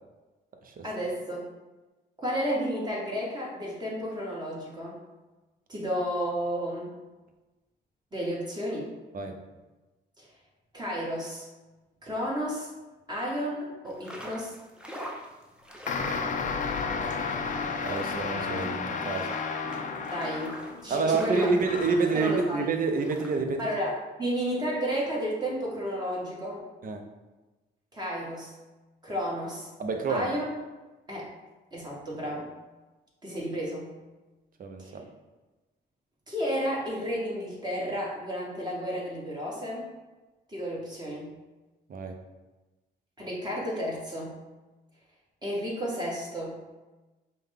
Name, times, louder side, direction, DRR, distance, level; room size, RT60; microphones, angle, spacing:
voice 1, 0.8-1.5 2.2-5.0 5.7-6.9 8.1-8.9 10.2-10.3 10.7-11.5 12.0-12.7 13.1-14.6 20.1-21.5 21.9-22.6 23.6-23.9 24.2-26.6 27.9-28.5 29.0-29.7 30.1-30.4 31.1-31.3 31.7-32.5 33.2-33.9 34.8-35.0 36.3-39.8 40.5-41.3 43.2-44.4 45.4-46.6, equal, 20° right, -5 dB, 1.4 m, -32 dB
sound 1, 13.9-23.4, equal, 5° right, 0.6 m, -45 dB
sound 2, 15.9-20.9 21.6-22.2, left 5 dB, 40° left, 0.4 m, -32 dB
voice 2, 17.8-19.3 20.9-23.7 26.8-27.0 29.8-30.3 34.6-35.1 41.9-42.1, right 4 dB, 45° right, 4 dB, 0.7 m, -28 dB
5.3 x 2.3 x 3.5 m, 1.2 s
cardioid pair, 90°, 20 cm